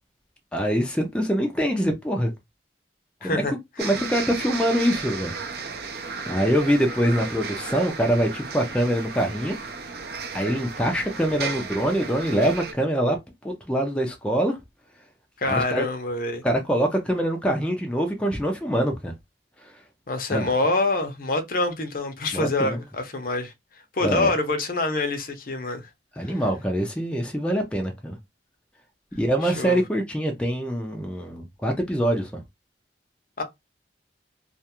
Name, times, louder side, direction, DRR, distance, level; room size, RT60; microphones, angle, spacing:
voice 1, 0.5-2.3 3.2-3.4 3.8-5.3 5.7-5.8 6.3-9.6 10.3-13.2 13.4-14.6 15.5-15.9 16.4-19.1 19.6-19.7 20.3-20.5 22.3-22.8 24.0-24.3 26.2-28.2 29.2-32.4, right 1 dB, 5° left, 0.4 m, -24 dB
voice 2, 3.2-3.5 3.8-3.9 15.4-16.4 20.1-23.5 23.9-25.9 26.2-26.4 29.4-29.8 33.4-33.5, left 2 dB, 50° left, 0.6 m, -26 dB
sound 1, 3.8-12.7, right 5 dB, 60° right, 0.5 m, -34 dB
2.4 x 2.3 x 2.8 m
head